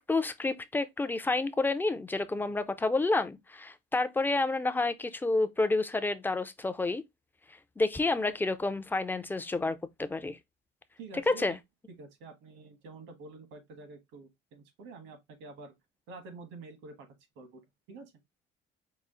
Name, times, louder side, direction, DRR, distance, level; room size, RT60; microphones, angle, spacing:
voice 1, 0.0-7.0 7.8-10.4 11.3-11.6, left 3 dB, 10° left, 0.4 m, -29 dB
voice 2, 11.0-11.6 12.0-15.7 16.1-17.1 17.3-17.6 17.9-18.1, right 3 dB, 85° right, 1.5 m, -48 dB
4.9 x 2.4 x 3.7 m
cardioid pair, 140°, 20 cm